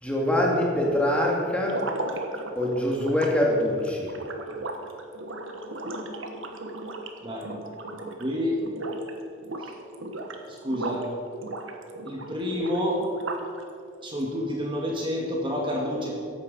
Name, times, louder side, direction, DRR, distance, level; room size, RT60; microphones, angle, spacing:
voice 1, 0.0-1.8 2.6-4.1, left 1 dB, 5° left, -3 dB, 2.4 m, -24 dB
sound 1, 1.6-8.3 8.6-9.1 9.4-11.1 11.4-13.6, right 2 dB, 85° right, 1.5 m, -36 dB
voice 2, 8.2-8.6 10.5-11.0 12.0-13.0 14.0-16.1, left 1 dB, 25° right, -1 dB, 1.9 m, -28 dB
15.0 x 11.5 x 5.4 m, 2.4 s
head